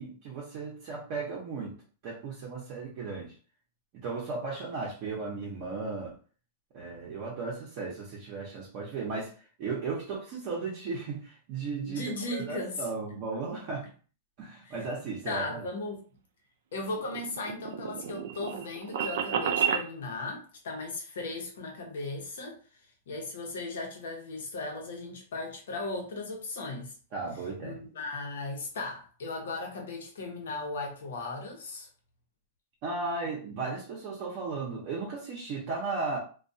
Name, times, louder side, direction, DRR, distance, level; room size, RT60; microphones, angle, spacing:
voice 1, 0.0-3.3 3.9-6.1 6.7-9.3 9.6-12.0 12.3-13.9 14.4-15.7 27.1-27.8 32.8-36.2, right 4 dB, 45° right, 0.7 m, -35 dB
voice 2, 11.9-12.9 14.7-14.8 15.3-16.0 16.7-22.6 23.1-26.9 27.6-31.9, left 2 dB, 85° left, 0.8 m, -37 dB
sound 1, 16.8-19.9, right 8 dB, 65° right, 0.3 m, -31 dB
2.2 x 2.2 x 2.6 m
supercardioid pair, 155°, 0 cm